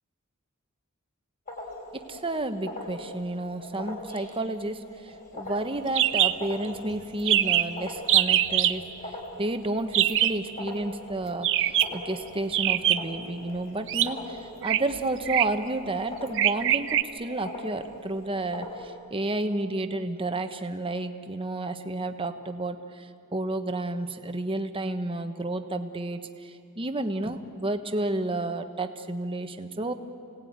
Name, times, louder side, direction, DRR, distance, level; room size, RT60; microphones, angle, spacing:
sound 1, 1.5-18.9, left 1 dB, 40° left, 5.4 m, -42 dB
voice 1, 1.9-29.9, right 2 dB, 25° right, 7 dB, 1.2 m, -31 dB
sound 2, 6.0-6.3 6.6-6.7 6.9-7.0 7.3-7.7 8.1-8.8 9.9-10.4 11.4-12.0 12.5-13.2 13.9-14.1 14.6-14.8 15.3-15.6 16.4-17.0, right 12 dB, 60° right, 0.7 m, -23 dB
28.5 x 18.0 x 9.5 m, 2.7 s
head